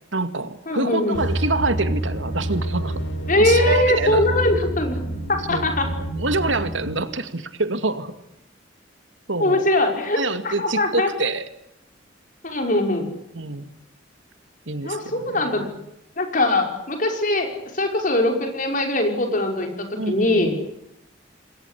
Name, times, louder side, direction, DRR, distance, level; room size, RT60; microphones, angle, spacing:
voice 1, 0.1-3.0 3.3-4.2 5.5-8.1 9.3-9.6 10.1-11.5 13.3-13.7 14.7-15.7 20.0-20.5, right 3 dB, 80° right, 10 dB, 2.3 m, -26 dB
voice 2, 0.7-1.2 3.3-5.0 5.3-5.9 9.4-11.1 12.4-13.1 14.8-15.7 16.2-20.6, left 2 dB, 45° left, 4 dB, 5.6 m, -21 dB
sound 1, 1.1-7.0, right 1 dB, 80° left, 5.3 m, -27 dB
28.0 x 21.5 x 8.4 m, 0.83 s
head